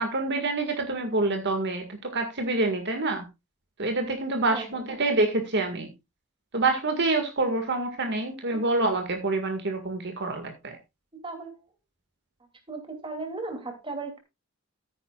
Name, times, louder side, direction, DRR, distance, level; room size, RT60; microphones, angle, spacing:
voice 1, 0.0-3.3 3.8-5.9 6.5-10.8, right 2 dB, 55° right, 5 dB, 1.8 m, -27 dB
voice 2, 4.5-4.9 11.2-11.6 12.7-14.2, right 3 dB, 25° right, 5 dB, 2.7 m, -36 dB
14.0 x 9.8 x 2.4 m, 0.24 s
head